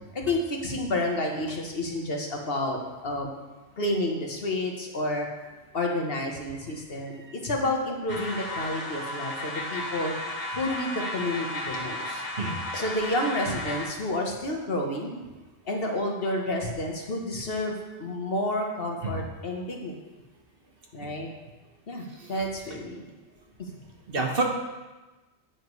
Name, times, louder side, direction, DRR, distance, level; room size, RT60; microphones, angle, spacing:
voice 1, 0.1-2.8 3.0-3.3 3.8-5.3 5.7-10.1 10.5-12.2 12.7-15.2 15.6-19.9 20.9-21.3 21.9-23.1 23.6-23.7, left 1 dB, 55° left, 1 dB, 1.4 m, -30 dB
voice 2, 6.5-7.0 7.3-7.4 12.4-12.6 19.0-19.1 21.0-21.1 22.0-22.4 24.1-24.4, right 3 dB, 55° right, 1 dB, 1.4 m, -31 dB
sound 1, 8.1-13.9, left 1 dB, 40° left, 1.6 m, -34 dB
10.0 x 9.1 x 3.2 m, 1.1 s
omnidirectional pair, 1.2 m